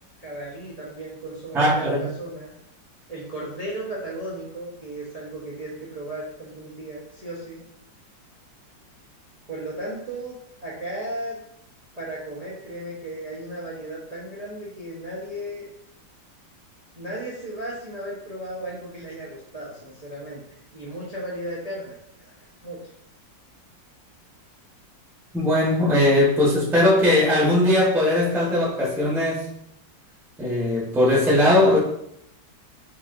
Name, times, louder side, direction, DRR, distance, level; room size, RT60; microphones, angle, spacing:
voice 1, 0.2-2.5 3.1-7.6 9.5-11.4 12.0-15.7 16.9-20.4 20.7-22.8, right 1 dB, 45° right, -6 dB, 0.4 m, -35 dB
voice 2, 1.5-2.1 25.3-29.4 30.4-31.8, left 1 dB, ahead, -4 dB, 0.7 m, -19 dB
5.8 x 2.8 x 2.5 m, 0.73 s
omnidirectional pair, 2.0 m